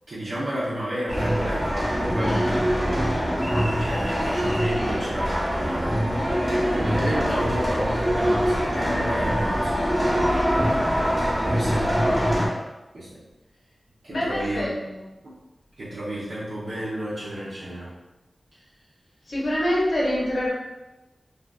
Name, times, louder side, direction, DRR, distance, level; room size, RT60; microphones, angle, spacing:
voice 1, 0.1-2.4 3.8-6.0 6.7-12.3 12.9-13.2 14.0-14.9 15.8-17.9, equal, 80° right, -10 dB, 0.6 m, -32 dB
sound 1, 1.1-12.5, equal, 20° right, 0.8 m, -23 dB
voice 2, 14.1-14.7 19.3-20.5, left 1 dB, 75° left, -5 dB, 0.7 m, -25 dB
2.4 x 2.3 x 2.3 m, 1.0 s
wide cardioid pair, 65°, 0 cm